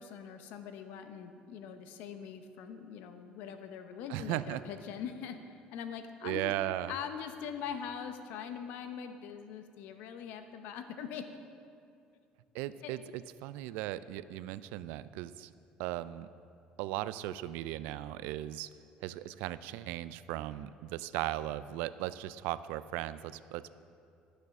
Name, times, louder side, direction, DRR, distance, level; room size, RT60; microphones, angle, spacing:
voice 1, 0.0-6.5 6.9-11.2 12.8-12.9, left 7 dB, 75° left, 8 dB, 0.8 m, -42 dB
voice 2, 4.1-4.6 6.2-6.9 12.5-15.5 15.8-16.3 16.8-18.7 19.0-23.7, right 14 dB, 90° right, 15 dB, 0.3 m, -37 dB
12.0 x 6.8 x 5.9 m, 2.5 s
cardioid pair, 140°, 3 cm